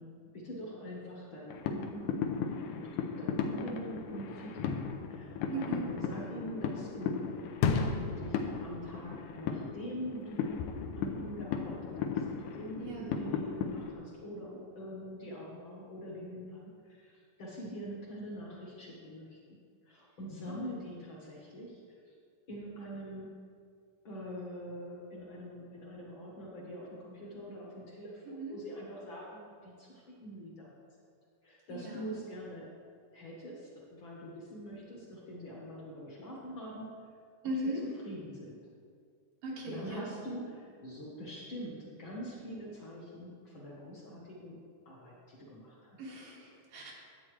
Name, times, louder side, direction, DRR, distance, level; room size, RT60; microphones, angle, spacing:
voice 1, 0.0-2.3 2.7-7.4 7.6-19.6 19.8-22.1 22.5-23.4 24.0-30.7 31.4-32.7 33.1-36.9 37.8-38.6 39.6-44.6 44.8-46.1, equal, 50° left, -4 dB, 1.5 m, -44 dB
sound 1, 1.5-13.9, left 6 dB, 80° left, 2.1 m, -35 dB
voice 2, 5.5-5.9 12.8-13.2 20.5-20.8 28.3-28.6 31.7-32.2 37.4-37.8 39.4-40.2 46.0-46.9, right 2 dB, 80° right, -4 dB, 2.9 m, -38 dB
12.0 x 8.3 x 3.2 m, 2.2 s
omnidirectional pair, 4.0 m